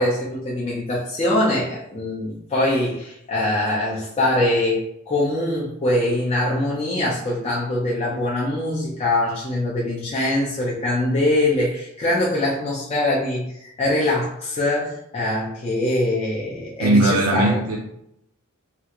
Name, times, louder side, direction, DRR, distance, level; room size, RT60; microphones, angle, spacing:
voice 1, 0.0-17.6, left 1 dB, 30° left, -6 dB, 0.6 m, -23 dB
voice 2, 16.8-17.8, right 2 dB, 80° right, -2 dB, 0.5 m, -18 dB
3.3 x 2.4 x 2.9 m, 0.77 s
head